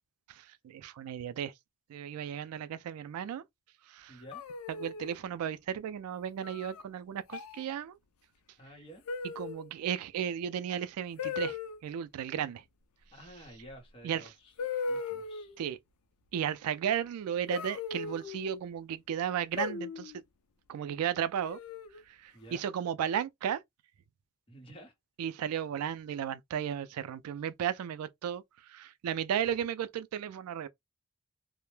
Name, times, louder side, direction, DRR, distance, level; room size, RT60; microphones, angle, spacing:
voice 1, 0.3-1.5 1.9-3.4 3.9-4.2 4.7-8.0 9.4-12.6 14.0-14.3 15.6-15.8 16.3-20.1 20.7-21.6 22.1-23.6 25.2-30.7, right 9 dB, 80° right, 0.3 m, -34 dB
voice 2, 4.1-4.4 8.6-9.0 13.1-14.5 14.8-15.5 22.3-22.6 24.5-24.9, equal, 25° left, 0.8 m, -51 dB
sound 1, 4.3-5.2 6.4-6.8 7.3-7.6 9.1-9.7 11.2-11.8 13.7-13.8 14.6-15.6 17.5-18.6 19.6-20.2 21.4-22.0, left 4 dB, 80° left, 0.4 m, -37 dB
2.1 x 2.0 x 3.1 m
head